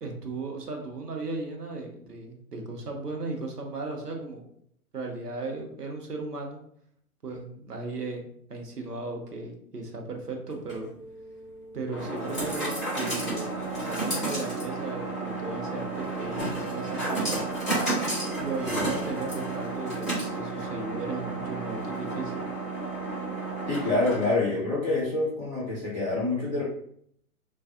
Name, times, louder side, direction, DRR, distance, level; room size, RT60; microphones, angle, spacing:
voice 1, 0.0-4.5 4.9-6.6 7.2-10.9 11.7-17.4 18.4-22.5, right 3 dB, 85° right, 3 dB, 0.8 m, -36 dB
sound 1, 10.5-24.5, right 2 dB, ahead, 1.4 m, -32 dB
voice 2, 23.7-26.6, left 2 dB, 20° right, -7 dB, 1.0 m, -26 dB
3.3 x 2.4 x 2.4 m, 0.68 s
figure-of-eight pair, 125°, 46 cm